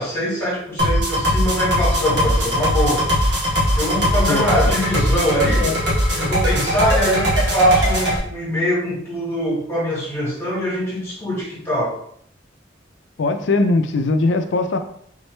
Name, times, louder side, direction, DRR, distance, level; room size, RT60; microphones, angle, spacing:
voice 1, 0.0-3.1 3.8-5.7 6.1-12.0, equal, 15° left, -7 dB, 1.6 m, -22 dB
sound 1, 0.8-8.2, equal, 65° right, 1.3 m, -20 dB
voice 2, 5.4-5.8 13.2-14.8, left 3 dB, 75° left, 8 dB, 0.4 m, -20 dB
3.8 x 3.1 x 3.2 m, 0.64 s
head